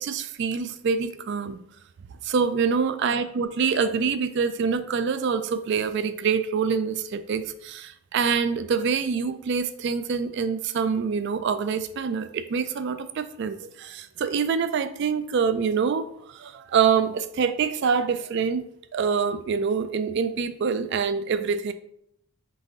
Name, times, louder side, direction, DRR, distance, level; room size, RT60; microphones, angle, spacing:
voice 1, 0.0-1.6 2.2-18.6 18.9-21.7, right 6 dB, 50° right, 11 dB, 0.3 m, -25 dB
4.0 x 3.6 x 3.6 m, 0.72 s
head